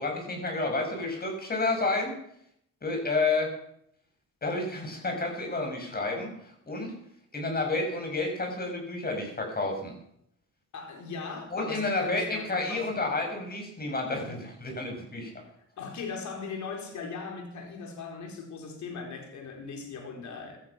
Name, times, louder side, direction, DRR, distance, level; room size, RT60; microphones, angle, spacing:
voice 1, 0.0-2.2 2.8-3.5 4.4-6.3 6.7-6.9 7.3-10.0 11.5-15.3, left 3 dB, 30° left, 6.9 m, -30 dB
voice 2, 10.7-13.0 15.8-20.6, left 4 dB, 70° left, 4.6 m, -39 dB
16.5 x 13.5 x 6.1 m
cardioid pair, 90°, 30 cm